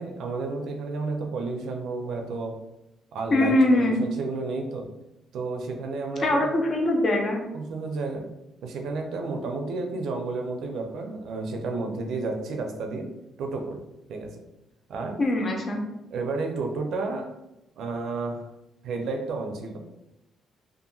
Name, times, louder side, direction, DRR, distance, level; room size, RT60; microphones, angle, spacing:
voice 1, 0.0-2.6 3.1-4.9 5.3-6.6 7.5-8.3 8.6-13.1 13.4-13.8 14.1-14.4 14.9-15.2 16.1-17.3 17.8-18.5 18.8-19.8, right 3 dB, 75° right, 3 dB, 0.4 m, -31 dB
voice 2, 3.3-4.0 6.2-7.4 15.2-15.8, left 1 dB, 45° left, 2 dB, 0.6 m, -22 dB
2.7 x 2.4 x 2.6 m, 0.92 s
cardioid pair, 105°, 0 cm